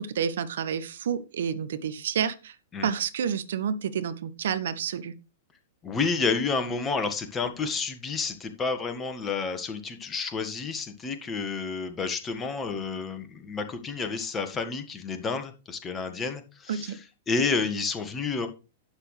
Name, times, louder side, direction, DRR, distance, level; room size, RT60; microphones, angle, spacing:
voice 1, 0.0-2.5 2.8-5.1 16.7-17.0, right 8 dB, 65° right, 13 dB, 0.9 m, -29 dB
voice 2, 5.8-18.5, left 4 dB, 20° left, 7 dB, 1.6 m, -30 dB
11.5 x 8.4 x 3.3 m, 0.31 s
figure-of-eight pair, 100°, 0 cm